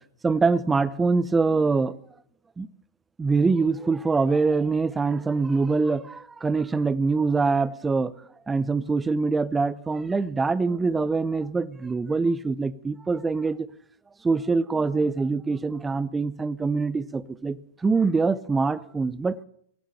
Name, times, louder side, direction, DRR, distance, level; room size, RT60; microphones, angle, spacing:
voice 1, 0.2-2.0 2.6-2.7 3.2-8.1 8.5-13.7 14.2-17.6 17.8-19.4, right 4 dB, 15° right, 17 dB, 0.7 m, -24 dB
22.5 x 7.7 x 6.6 m, 0.67 s
figure-of-eight pair, 100°, 0 cm